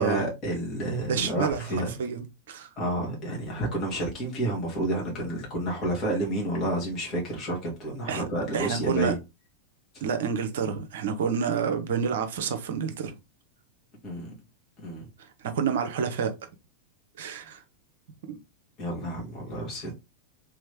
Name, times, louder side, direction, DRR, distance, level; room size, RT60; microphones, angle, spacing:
voice 1, 0.0-1.9 2.8-9.2 14.0-14.3 14.8-15.1 18.8-20.0, right 1 dB, 30° left, 2.0 m, -30 dB
voice 2, 1.1-2.7 8.1-8.2 8.5-9.1 10.0-13.2 15.4-16.3 17.2-17.6 18.3-18.4, right 6 dB, 55° right, 0.8 m, -29 dB
3.4 x 3.2 x 3.4 m
figure-of-eight pair, 90°, 0 cm